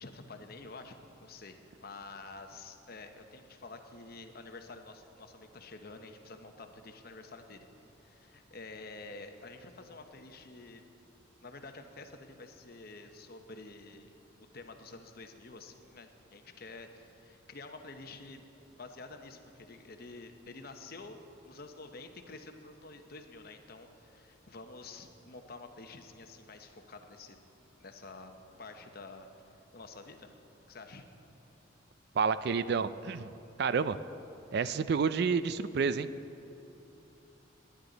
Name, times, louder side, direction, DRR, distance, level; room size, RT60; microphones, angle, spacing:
voice 1, 0.0-1.6 1.8-7.7 8.0-10.8 11.4-14.2 14.5-18.4 18.8-21.2 21.4-27.4 27.8-28.3 28.6-30.3 30.7-31.1, left 3 dB, 50° left, 6 dB, 0.9 m, -49 dB
voice 2, 32.1-33.3 33.6-34.0 34.5-36.1, right 5 dB, 55° right, 14 dB, 0.4 m, -29 dB
19.5 x 10.5 x 4.0 m, 2.9 s
head